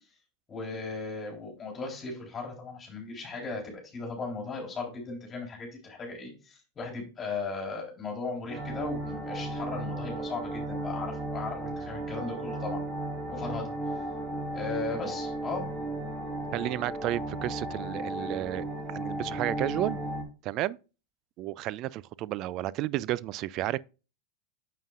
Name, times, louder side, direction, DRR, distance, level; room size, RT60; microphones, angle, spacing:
voice 1, 0.5-12.8 13.3-14.0 14.5-15.7, left 4 dB, 25° left, 3.8 m, -37 dB
sound 1, 8.5-20.2, right 1 dB, 10° right, 2.1 m, -35 dB
voice 2, 16.5-20.0 20.4-20.8 21.4-23.8, right 15 dB, 45° right, 0.3 m, -32 dB
9.2 x 7.5 x 2.4 m
hypercardioid pair, 110°, 0 cm